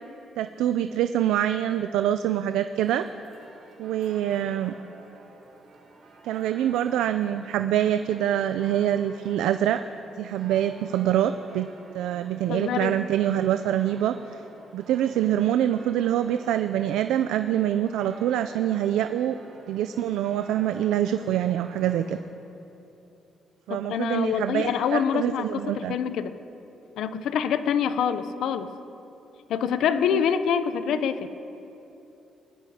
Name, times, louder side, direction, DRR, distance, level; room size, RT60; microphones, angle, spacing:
voice 1, 0.4-3.1 3.8-4.8 6.2-9.8 10.2-11.7 11.9-14.4 14.7-19.4 19.7-22.2 23.7-26.0 30.1-30.2 30.9-31.0, right 11 dB, 90° right, 9 dB, 0.3 m, -25 dB
sound 1, 2.8-22.2, right 3 dB, 60° right, 2.8 m, -50 dB
voice 2, 12.5-13.0 23.7-26.3 27.0-28.7 29.5-31.5, left 8 dB, 80° left, 11 dB, 0.6 m, -26 dB
21.0 x 11.0 x 2.8 m, 2.9 s
cardioid pair, 90°, 0 cm